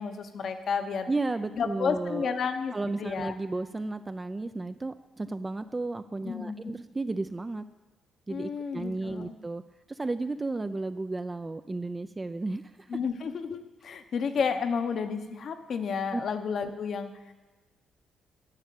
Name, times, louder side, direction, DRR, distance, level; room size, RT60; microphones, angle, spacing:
voice 1, 0.0-1.1 1.5-3.3 6.2-6.7 8.3-9.3 12.9-17.1, left 6 dB, 55° left, 8 dB, 0.9 m, -31 dB
voice 2, 1.1-2.3 2.7-7.6 8.3-9.6 9.9-12.6 16.1-16.2, right 2 dB, 20° right, 10 dB, 0.4 m, -33 dB
10.5 x 6.2 x 7.7 m, 1.2 s
cardioid pair, 90°, 0 cm